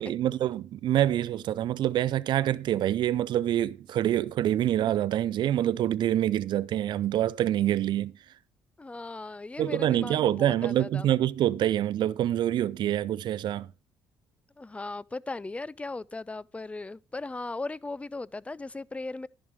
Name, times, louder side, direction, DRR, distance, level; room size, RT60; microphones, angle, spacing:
voice 1, 0.0-8.1 9.6-13.7, right 12 dB, 65° right, 0.5 m, -26 dB
voice 2, 8.8-11.1 14.6-19.3, left 3 dB, 15° left, 0.4 m, -37 dB
11.0 x 6.4 x 5.3 m
supercardioid pair, 60°, 8 cm